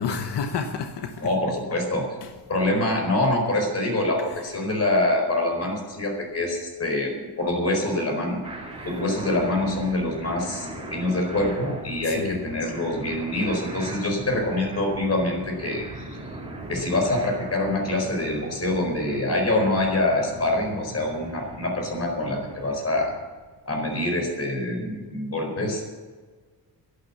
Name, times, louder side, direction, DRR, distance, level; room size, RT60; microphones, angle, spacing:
voice 1, 0.0-1.4 2.2-2.4 4.3-4.7 8.7-8.9 12.0-12.4, left 6 dB, 85° left, 1.2 m, -31 dB
voice 2, 1.2-2.1 2.5-8.4 8.8-16.1 16.7-23.1 23.7-25.8, left 1 dB, 40° left, 4.6 m, -25 dB
sound 1, 8.4-23.3, right 2 dB, 15° right, 3.2 m, -39 dB
12.0 x 11.5 x 8.3 m
wide cardioid pair, 150°, 40 cm